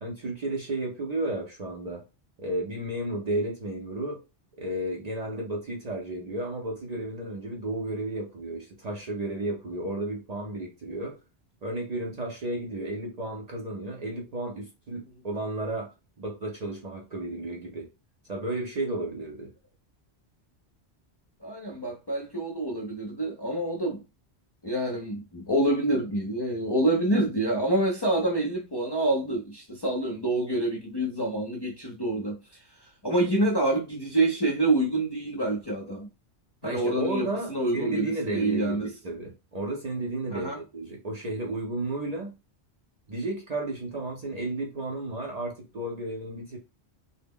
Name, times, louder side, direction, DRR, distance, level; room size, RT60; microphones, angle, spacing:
voice 1, 0.0-2.0 2.4-4.2 4.6-11.2 11.6-17.9 18.3-19.5 36.6-42.3 43.1-46.6, right 2 dB, 50° right, 0.5 m, -33 dB
voice 2, 21.4-24.0 24.6-32.4 33.0-36.1 36.6-38.9 40.3-40.6, right 1 dB, 35° left, 0.4 m, -27 dB
2.1 x 2.0 x 3.5 m
omnidirectional pair, 1.1 m